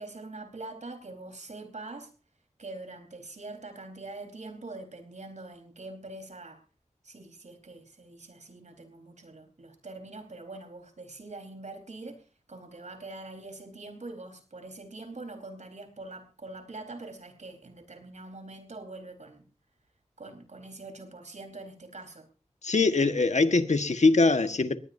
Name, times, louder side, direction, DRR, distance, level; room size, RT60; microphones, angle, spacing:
voice 1, 0.0-2.1 2.6-6.6 7.0-19.5 20.2-22.3, right 2 dB, 80° right, 4.4 m, -44 dB
voice 2, 22.6-24.8, left 3 dB, 75° left, 1.5 m, -22 dB
21.0 x 18.5 x 2.7 m
wide cardioid pair, 45°, 12 cm